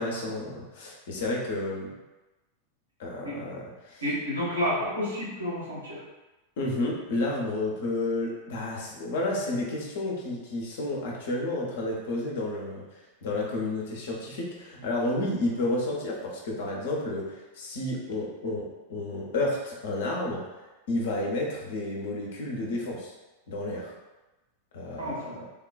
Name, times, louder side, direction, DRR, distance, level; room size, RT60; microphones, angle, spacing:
voice 1, 0.0-1.9 3.0-4.0 6.6-23.1 23.5-23.9 24.7-25.5, left 2 dB, 55° left, -2 dB, 0.6 m, -31 dB
voice 2, 4.0-6.0 25.0-25.4, left 1 dB, 85° right, -8 dB, 1.1 m, -30 dB
3.4 x 2.2 x 2.4 m, 1.1 s
figure-of-eight pair, 90°, 0 cm